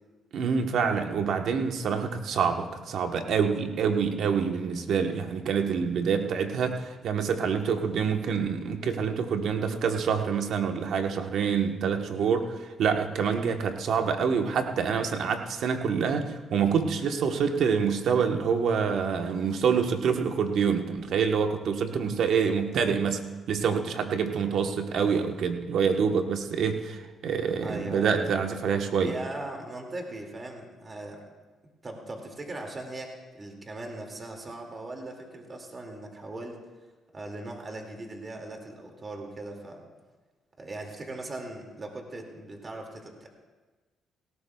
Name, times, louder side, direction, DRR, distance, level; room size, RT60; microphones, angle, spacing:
voice 1, 0.3-29.1, right 6 dB, 70° right, 5 dB, 1.2 m, -26 dB
voice 2, 13.2-13.6 24.4-24.6 27.6-28.3 29.0-31.2 31.8-36.6 37.1-39.9 40.6-43.3, right 2 dB, 35° right, 2 dB, 2.3 m, -39 dB
18.0 x 17.5 x 2.3 m, 1.3 s
cardioid pair, 90°, 0 cm